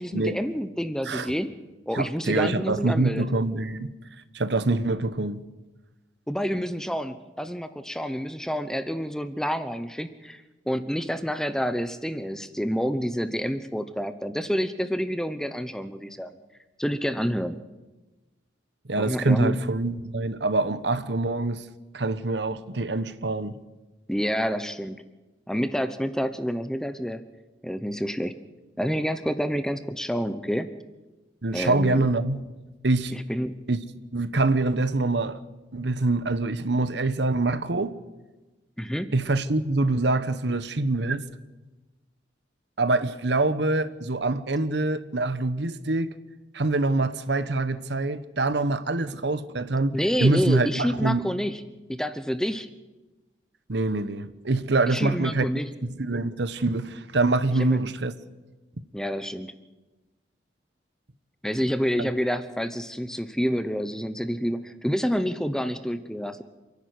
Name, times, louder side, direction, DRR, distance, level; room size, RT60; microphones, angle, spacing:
voice 1, 0.0-1.5 1.9-3.3 6.3-16.4 16.8-17.6 19.0-19.6 24.1-25.0 25.5-27.2 27.6-28.4 28.8-30.7 31.5-32.1 33.1-33.7 38.8-39.1 49.9-51.6 51.9-52.7 54.9-55.7 57.6-57.9 58.9-59.5 61.4-66.4, equal, 5° left, 0.8 m, -28 dB
voice 2, 1.9-3.9 4.3-5.4 18.9-21.6 21.9-23.5 31.4-32.5 32.8-33.1 33.7-33.8 34.1-35.4 35.7-38.0 39.1-41.2 42.8-46.1 46.5-51.2 53.7-55.5 56.0-58.1, right 2 dB, 70° right, 1.1 m, -25 dB
28.0 x 11.0 x 9.5 m
head